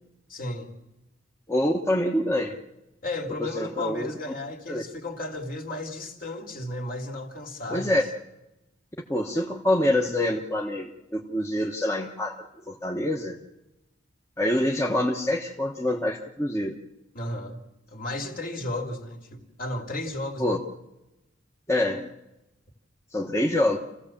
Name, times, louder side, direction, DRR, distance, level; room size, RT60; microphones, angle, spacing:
voice 1, 0.3-0.7 3.0-8.0 17.1-20.7, left 2 dB, 50° left, 2 dB, 2.6 m, -34 dB
voice 2, 1.5-2.6 3.4-4.1 4.7-4.8 7.7-8.0 9.1-13.4 14.4-16.7 20.4-20.6 21.7-22.1 23.1-23.8, left 1 dB, 15° left, 0 dB, 1.2 m, -26 dB
28.5 x 15.5 x 7.3 m, 0.97 s
head